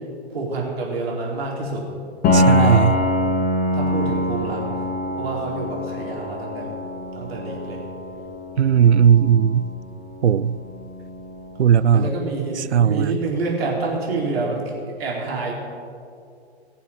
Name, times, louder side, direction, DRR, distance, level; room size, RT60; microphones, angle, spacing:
voice 1, 0.3-1.8 2.3-2.9 3.7-4.8 5.2-6.7 7.2-7.8 11.9-14.6 15.0-15.5, right 3 dB, 65° right, -3 dB, 4.0 m, -27 dB
Piano, 2.2-11.8, left 1 dB, 25° left, 1.7 m, -24 dB
voice 2, 2.3-3.0 8.6-9.7 10.2-10.6 11.6-12.1 12.7-13.1, right 8 dB, 80° right, 18 dB, 0.5 m, -16 dB
20.0 x 7.3 x 5.6 m, 2.4 s
figure-of-eight pair, 115°, 33 cm